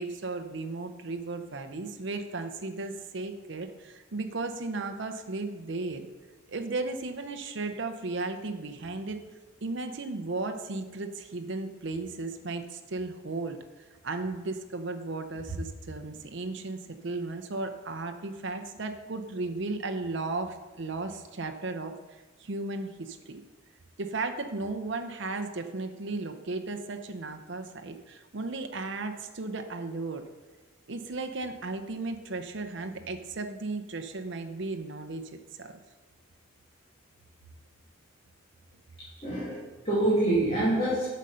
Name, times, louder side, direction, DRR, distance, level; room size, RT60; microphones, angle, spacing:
voice 1, 0.0-6.1 6.5-9.2 9.6-13.6 14.0-23.4 24.0-30.2 30.9-35.8 39.4-39.6, right 3 dB, 60° right, 6 dB, 0.7 m, -35 dB
voice 2, 39.2-41.1, right 1 dB, 30° left, -8 dB, 2.3 m, -26 dB
8.1 x 6.3 x 5.5 m, 1.2 s
head